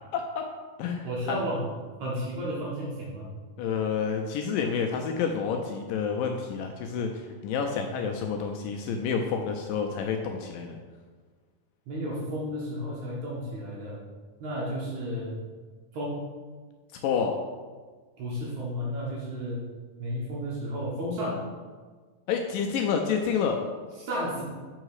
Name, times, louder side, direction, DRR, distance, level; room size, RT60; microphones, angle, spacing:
voice 1, 0.1-0.5 0.8-1.4 3.6-10.8 17.0-17.4 22.3-23.6, left 6 dB, 80° left, 3 dB, 2.0 m, -29 dB
voice 2, 1.0-1.6 2.0-3.3 11.9-14.0 14.4-15.4 15.9-16.2 18.2-19.6 20.0-21.4 24.0-24.4, equal, 60° right, -5 dB, 2.3 m, -32 dB
7.2 x 4.8 x 4.7 m, 1.5 s
omnidirectional pair, 4.3 m